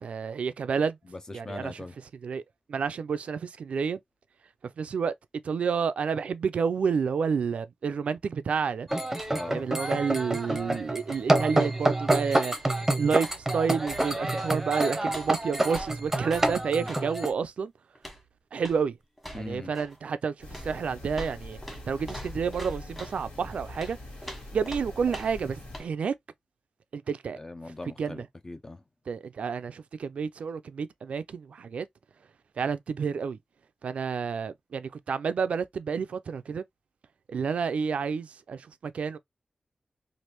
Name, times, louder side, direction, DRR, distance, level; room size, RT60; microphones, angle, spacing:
voice 1, 0.0-1.0 1.3-1.8 2.2-2.4 2.7-4.0 4.8-5.1 5.4-8.9 9.5-12.6 13.0-13.3 13.5-17.7 18.5-19.0 19.3-21.6 21.9-24.0 24.5-26.1 26.9-27.4 28.0-28.3 29.1-31.9 32.6-33.4 33.8-36.6 37.3-39.2, right 6 dB, 80° right, 0.3 m, -30 dB
voice 2, 1.0-2.0 9.3-9.7 16.8-16.9 19.3-19.7 27.4-28.8, left 2 dB, 25° left, 0.5 m, -40 dB
sound 1, 8.9-17.3, right 1 dB, 15° right, 0.7 m, -27 dB
sound 2, 9.1-9.5 9.8-11.9 12.4-12.8 13.2-14.6 15.1-17.1 17.9-18.3 18.6-18.9 19.2-20.0 20.5-23.2 23.7-25.5 25.7-25.9, equal, 5° left, 1.4 m, -44 dB
sound 3, 20.4-25.8, left 1 dB, 70° left, 1.6 m, -43 dB
3.2 x 2.5 x 2.9 m
wide cardioid pair, 100°, 2 cm